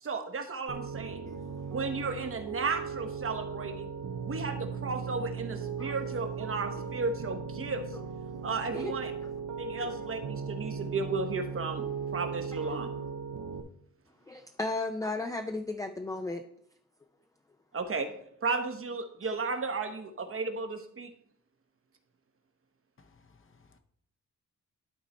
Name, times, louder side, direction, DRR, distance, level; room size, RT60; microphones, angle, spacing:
voice 1, 0.0-1.3 1.7-3.9 4.2-7.8 8.4-9.1 9.6-11.9 12.1-12.9 17.7-18.1 18.4-21.1, right 4 dB, 45° right, 7 dB, 0.9 m, -34 dB
Piano, 0.7-13.6, right 6 dB, 85° right, 0.8 m, -37 dB
voice 2, 14.3-16.4, left 2 dB, 10° left, 6 dB, 0.4 m, -35 dB
voice 3, 23.0-23.8, left 4 dB, 45° left, 8 dB, 0.8 m, -61 dB
11.5 x 3.9 x 4.2 m, 0.68 s
wide cardioid pair, 120°, 30 cm